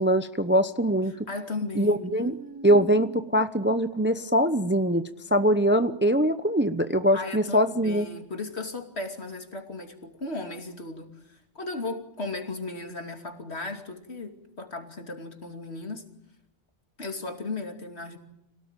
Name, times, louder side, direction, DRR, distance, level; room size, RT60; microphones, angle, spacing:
voice 1, 0.0-1.1 1.8-2.3 2.6-5.0 5.3-8.1, equal, 10° right, 10 dB, 0.7 m, -22 dB
voice 2, 1.1-3.2 7.1-16.0 17.0-18.2, left 3 dB, 65° left, 4 dB, 3.0 m, -36 dB
26.5 x 18.5 x 9.0 m, 0.83 s
omnidirectional pair, 1.2 m